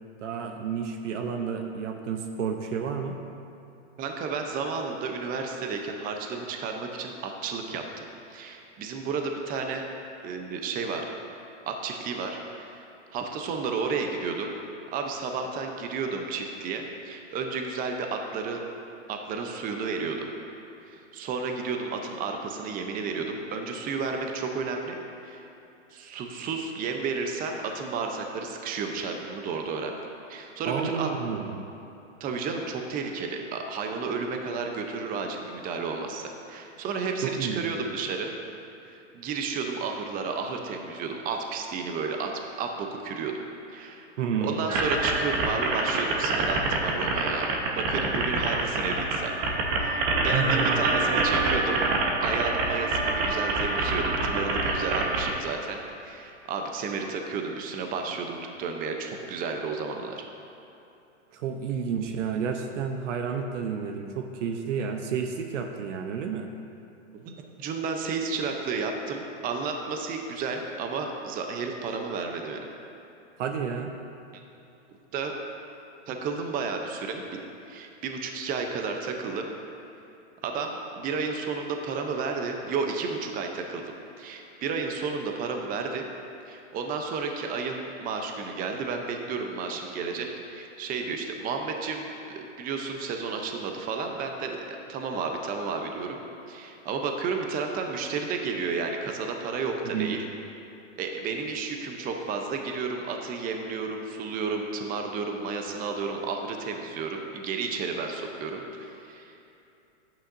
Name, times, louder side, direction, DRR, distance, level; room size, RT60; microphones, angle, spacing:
voice 1, 0.2-3.1 30.7-31.7 37.2-37.6 44.2-44.6 50.3-50.8 61.3-66.5 73.4-73.9 99.9-100.2, right 6 dB, 80° right, 4 dB, 0.9 m, -30 dB
voice 2, 4.0-9.8 10.2-11.1 11.7-12.8 13.1-14.5 14.9-18.6 19.1-20.3 20.9-25.0 25.2-25.4 25.9-30.0 30.3-31.1 32.2-38.3 38.9-42.3 42.6-43.3 43.7-44.1 44.4-49.3 49.7-51.8 52.2-60.2 67.1-67.3 67.6-72.7 75.1-75.3 76.1-79.5 80.4-83.8 84.2-86.0 86.5-96.2 96.5-100.2 101.0-109.4, right 4 dB, 25° right, 3 dB, 0.7 m, -32 dB
sound 1, 44.7-55.3, right 2 dB, 45° right, 1.2 m, -26 dB
11.0 x 8.8 x 2.6 m, 2.8 s
hypercardioid pair, 130°, 36 cm